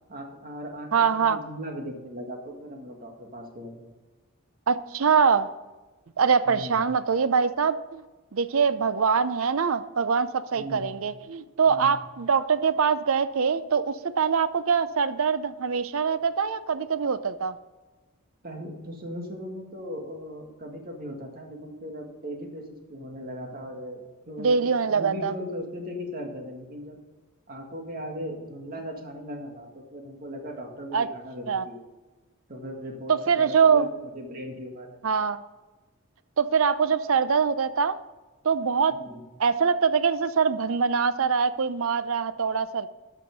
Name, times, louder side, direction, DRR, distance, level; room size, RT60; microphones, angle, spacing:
voice 1, 0.1-0.9 1.1-3.9 6.5-6.8 10.5-10.9 11.7-12.0 18.4-24.0 24.3-27.0 27.5-31.8 32.5-35.0 39.0-39.2, equal, 40° right, 2 dB, 1.8 m, -38 dB
voice 2, 0.9-1.4 4.7-5.5 6.2-8.0 8.3-17.6 24.4-25.3 30.9-31.1 31.5-31.7 33.1-33.9 35.0-35.4 36.4-38.0 38.4-39.0 39.4-42.9, right 6 dB, 65° right, 14 dB, 0.5 m, -23 dB
12.5 x 5.8 x 5.2 m, 1.2 s
head